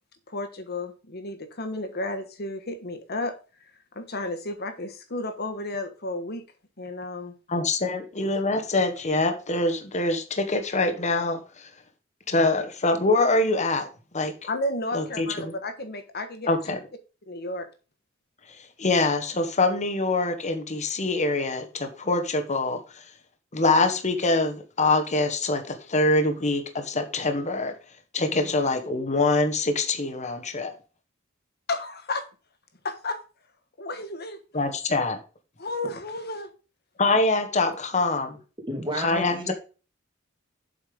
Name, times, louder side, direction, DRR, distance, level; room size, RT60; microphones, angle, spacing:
voice 1, 0.3-6.4 6.8-7.3 12.4-12.5 14.5-16.6 17.3-17.7 28.3-28.5 31.7-32.2 32.8-33.2 33.8-34.4 35.6-36.5 37.6-37.8, left 2 dB, 50° left, 8 dB, 1.4 m, -33 dB
voice 2, 7.5-11.4 12.3-13.9 14.1-14.3 14.9-15.5 16.5-16.8 18.8-22.8 23.5-27.7 28.1-30.7 34.5-35.2 37.0-38.4 39.0-39.5, left 2 dB, 35° left, 6 dB, 1.2 m, -24 dB
voice 3, 38.7-39.5, right 1 dB, 25° right, 2 dB, 2.4 m, -31 dB
7.7 x 5.5 x 5.2 m, 0.34 s
head